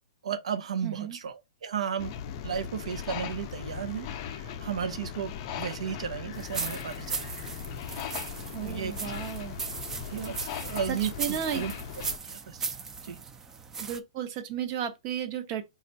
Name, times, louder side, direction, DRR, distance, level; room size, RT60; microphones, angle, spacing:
voice 1, 0.2-2.1 2.4-7.4 8.6-8.9 10.1-11.7 12.2-12.6 13.0-13.2, right 8 dB, 80° right, 0.6 m, -34 dB
voice 2, 0.8-1.2 8.5-9.6 10.5-11.6 13.8-15.6, right 9 dB, 35° right, 0.8 m, -34 dB
sound 1, 2.0-12.2, left 8 dB, 40° left, 0.5 m, -38 dB
sound 2, 6.3-14.0, right 5 dB, 15° right, 0.4 m, -38 dB
4.4 x 2.4 x 4.0 m
hypercardioid pair, 145°, 3 cm